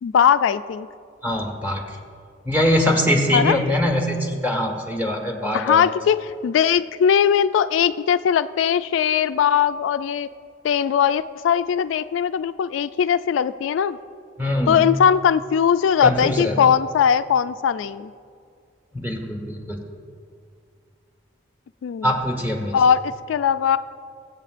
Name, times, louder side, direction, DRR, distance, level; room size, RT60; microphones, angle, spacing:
voice 1, 0.0-0.9 3.3-3.6 5.5-10.3 10.6-14.0 14.7-18.1 21.8-22.1 22.7-23.8, left 8 dB, 90° left, 13 dB, 0.3 m, -20 dB
voice 2, 1.2-1.8 2.4-5.8 14.4-14.8 16.0-16.5 18.9-19.8 22.0-22.7, left 1 dB, 10° right, 2 dB, 1.3 m, -22 dB
23.0 x 7.9 x 2.5 m, 2.3 s
head